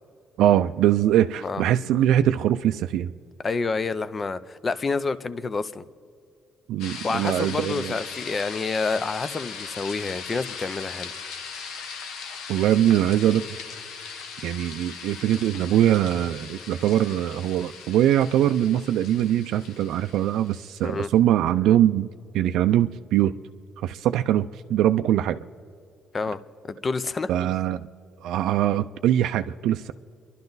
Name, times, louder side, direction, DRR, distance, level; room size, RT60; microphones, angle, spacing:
voice 1, 0.4-3.1 6.7-7.9 12.5-13.4 14.4-22.1 22.3-23.3 23.8-25.4 27.3-27.9 28.2-29.9, right 11 dB, 90° right, 8 dB, 0.4 m, -22 dB
voice 2, 3.4-5.8 7.0-11.1 20.8-21.1 26.1-26.4 26.7-27.3, left 4 dB, 25° left, 14 dB, 0.5 m, -28 dB
sound 1, 6.8-20.9, left 5 dB, 85° left, 1.3 m, -39 dB
29.5 x 11.5 x 4.0 m, 2.3 s
cardioid pair, 175°, 0 cm